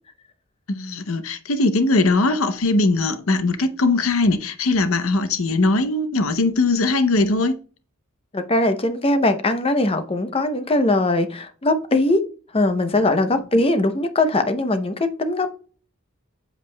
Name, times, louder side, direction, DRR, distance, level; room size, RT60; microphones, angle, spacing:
voice 1, 0.7-7.5, left 2 dB, 75° left, 0.7 m, -20 dB
voice 2, 8.3-12.2 12.5-15.5, left 2 dB, 25° left, 0.7 m, -20 dB
8.0 x 7.4 x 2.2 m
head